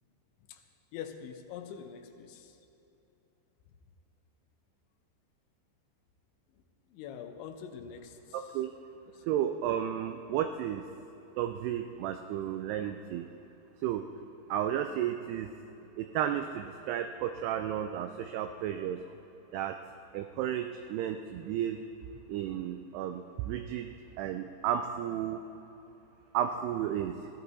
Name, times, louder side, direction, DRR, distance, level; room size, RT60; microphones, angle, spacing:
voice 1, 0.9-2.6 6.9-8.5 9.1-9.2, left 8 dB, 90° left, 5 dB, 3.1 m, -44 dB
voice 2, 8.3-8.7 9.3-10.8 11.4-13.3 13.8-14.0 14.5-15.5 16.0-19.0 19.5-19.8 20.1-21.8 22.3-23.9 24.2-25.4 26.3-27.2, right 10 dB, 90° right, 7 dB, 2.3 m, -33 dB
17.0 x 13.5 x 4.1 m, 3.0 s
omnidirectional pair, 5.2 m